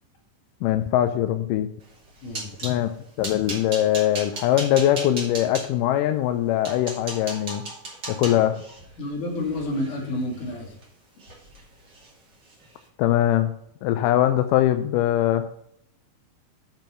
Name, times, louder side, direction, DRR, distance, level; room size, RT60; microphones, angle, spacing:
voice 1, 0.6-1.7 2.6-2.9 3.2-7.6 8.1-8.6 13.0-13.5 13.8-15.5, left 12 dB, 80° left, 9 dB, 2.0 m, -22 dB
sound 1, 1.9-2.8 3.2-5.7 6.3-6.4 6.6-10.8 11.2-11.6 11.9-12.1 12.5-12.7, right 2 dB, 35° right, 2.7 m, -36 dB
voice 2, 9.0-10.7, left 1 dB, 65° left, 0 dB, 3.7 m, -29 dB
9.1 x 5.2 x 5.8 m, 0.70 s
omnidirectional pair, 4.0 m